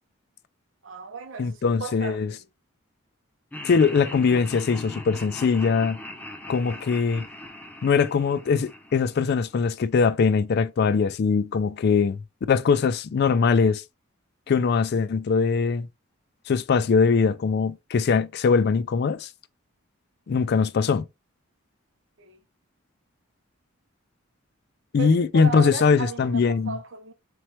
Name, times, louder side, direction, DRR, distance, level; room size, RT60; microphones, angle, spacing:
voice 1, 0.8-2.4 22.2-22.4 25.0-27.1, right 5 dB, 65° right, 0.8 m, -36 dB
voice 2, 1.4-2.3 3.6-6.0 6.5-7.3 7.8-12.2 12.5-13.8 14.5-15.9 16.5-19.3 20.3-21.1 24.9-26.8, left 5 dB, 50° left, 0.3 m, -21 dB
Laughter, 3.5-9.7, left 1 dB, 10° left, 0.6 m, -40 dB
4.1 x 3.1 x 3.0 m
head